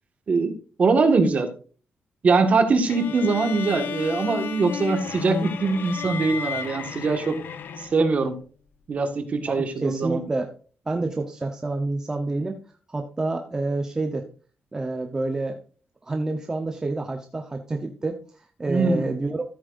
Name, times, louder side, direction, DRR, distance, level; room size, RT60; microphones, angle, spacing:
voice 1, 0.8-1.5 2.2-7.4 7.8-8.4 8.9-10.2 18.7-19.1, right 4 dB, 40° right, 6 dB, 1.7 m, -22 dB
sound 1, 2.9-8.2, left 7 dB, 65° left, 1.0 m, -33 dB
voice 2, 9.5-10.5 10.9-12.6 12.9-14.3 14.7-15.6 16.0-19.4, right 2 dB, 15° right, 3 dB, 0.9 m, -28 dB
14.0 x 8.8 x 2.6 m, 0.39 s
wide cardioid pair, 170°, 4 cm